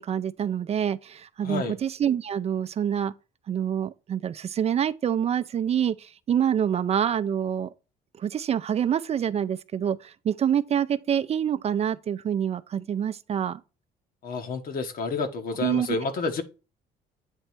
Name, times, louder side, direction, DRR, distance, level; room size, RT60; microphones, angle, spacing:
voice 1, 0.0-3.1 3.5-7.7 8.2-13.6 15.6-15.9, right 9 dB, 40° right, 0.5 m, -26 dB
voice 2, 1.4-1.7 14.2-16.4, left 4 dB, 60° left, 1.4 m, -29 dB
9.0 x 3.2 x 4.5 m
cardioid pair, 110°, 17 cm